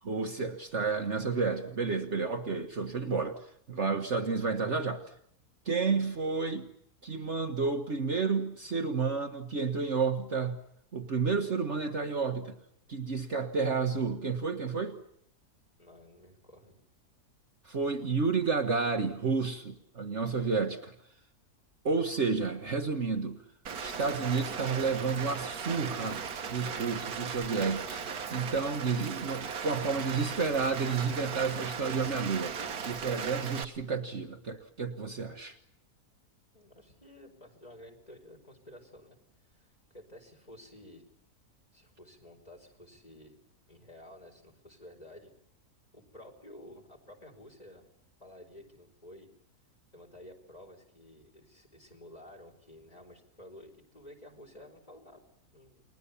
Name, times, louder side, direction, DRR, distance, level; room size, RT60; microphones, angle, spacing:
voice 1, 0.0-5.0 5.6-6.7 7.0-10.6 10.9-12.6 12.9-14.9 17.6-20.9 21.8-23.4 23.8-26.2 26.5-28.0 28.3-32.6 32.8-35.6, right 4 dB, 50° right, 5 dB, 1.6 m, -31 dB
voice 2, 15.8-16.7 36.5-39.2 39.4-41.0 41.7-43.4 43.7-45.3 45.9-47.8 48.2-49.3 49.9-55.8, left 1 dB, 25° left, 2 dB, 4.8 m, -52 dB
Rain, 23.7-33.7, right 6 dB, 75° right, 1.8 m, -37 dB
30.0 x 21.5 x 7.1 m, 0.72 s
omnidirectional pair, 1.6 m